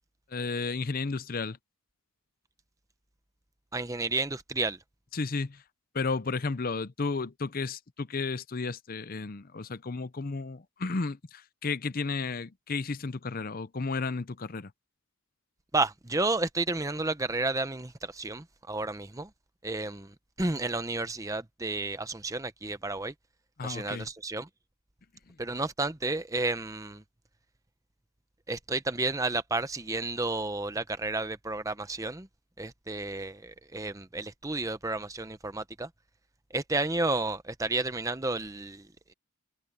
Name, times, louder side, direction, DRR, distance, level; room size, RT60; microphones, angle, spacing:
voice 1, 0.3-1.6 5.1-5.6 5.9-14.7 23.6-24.1 25.3-25.4, left 4 dB, 40° left, 0.6 m, -33 dB
voice 2, 3.7-4.8 15.7-19.3 19.6-23.1 23.6-24.5 25.4-27.0 28.5-32.3 32.6-35.9 36.5-39.1, right 2 dB, 15° right, 0.8 m, -31 dB
head